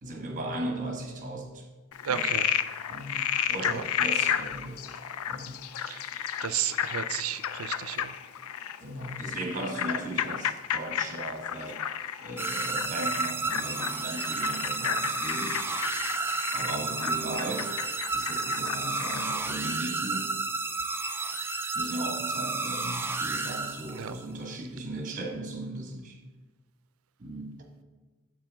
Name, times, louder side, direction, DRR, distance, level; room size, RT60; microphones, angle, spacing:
voice 1, 0.0-1.7 2.1-2.3 2.9-5.0 5.3-5.5 8.8-11.8 12.2-15.6 16.5-17.7 18.1-20.4 21.7-26.2 27.2-27.7, right 1 dB, 35° right, 3 dB, 1.2 m, -37 dB
Frog, 1.9-19.4, left 9 dB, 80° left, 0.4 m, -32 dB
voice 2, 2.0-2.5 3.6-3.8 5.8-6.0 6.4-8.2 23.9-24.1, right 9 dB, 75° right, 12 dB, 0.5 m, -33 dB
sound 1, 12.4-24.2, right 3 dB, 10° right, 0.4 m, -31 dB
8.8 x 7.5 x 3.5 m, 1.2 s
head